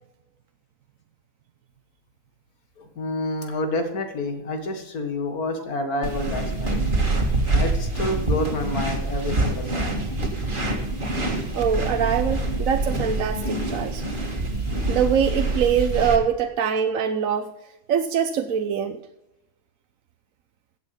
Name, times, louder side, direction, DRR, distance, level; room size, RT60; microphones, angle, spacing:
voice 1, 2.8-6.8 7.5-10.0, left 2 dB, 75° left, 6 dB, 2.4 m, -29 dB
sound 1, 6.0-16.2, right 2 dB, 35° right, 2.1 m, -25 dB
voice 2, 11.5-14.0 14.9-17.5 17.9-19.0, right 7 dB, 65° right, 7 dB, 1.1 m, -23 dB
15.0 x 8.2 x 5.1 m, 0.92 s
omnidirectional pair, 1.6 m